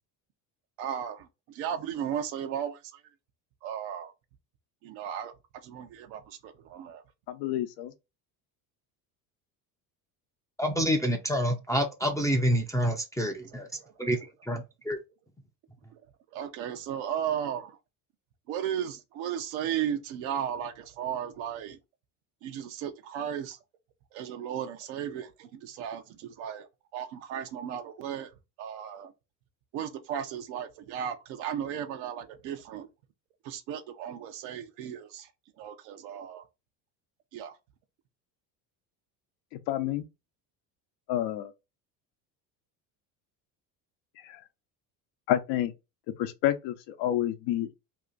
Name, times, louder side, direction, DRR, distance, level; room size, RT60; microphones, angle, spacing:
voice 1, 0.8-3.0 3.6-4.1 4.8-5.3 5.6-7.0 13.7-13.9 15.9-16.0 16.3-17.8 18.5-21.8 22.4-23.6 24.1-26.7 26.9-28.3 28.6-29.1 29.7-32.9 33.4-35.3 35.6-36.4 37.3-37.6, right 9 dB, 75° right, 0.8 m, -35 dB
voice 2, 7.3-7.9 39.5-40.1 41.1-41.5 44.2-44.4 45.3-45.7 46.2-47.8, left 12 dB, 70° left, 0.7 m, -29 dB
voice 3, 10.6-13.7 14.0-15.0, equal, 5° left, 0.5 m, -28 dB
2.8 x 2.4 x 3.8 m
supercardioid pair, 85°, 47 cm